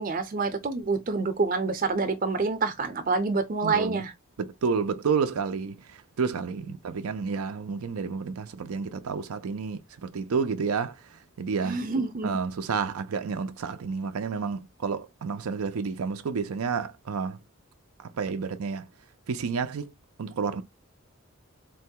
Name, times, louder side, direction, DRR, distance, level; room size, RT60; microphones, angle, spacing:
voice 1, 0.0-4.1 6.6-6.7 11.6-12.4, right 4 dB, 40° right, 0.6 m, -27 dB
voice 2, 3.6-4.0 4.4-11.8 12.2-17.4 18.0-18.9 19.3-19.9 20.2-20.6, right 5 dB, 90° right, 0.5 m, -30 dB
3.9 x 2.2 x 2.7 m
head